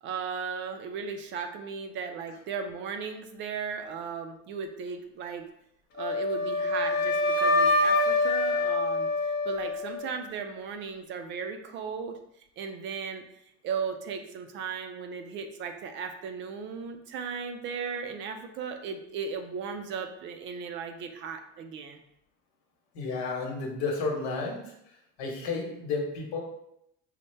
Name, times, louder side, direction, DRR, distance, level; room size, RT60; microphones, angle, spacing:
voice 1, 0.0-5.5 6.0-9.1 9.4-12.2 12.6-13.2 13.6-22.0, right 6 dB, 40° right, 6 dB, 0.4 m, -36 dB
Wind instrument woodwind instrument, 6.0-10.1, left 2 dB, 50° left, 0.8 m, -25 dB
voice 2, 22.9-24.7 25.2-26.4, left 4 dB, 75° left, 0 dB, 1.2 m, -32 dB
5.4 x 2.1 x 3.2 m, 0.77 s
cardioid pair, 160°, 32 cm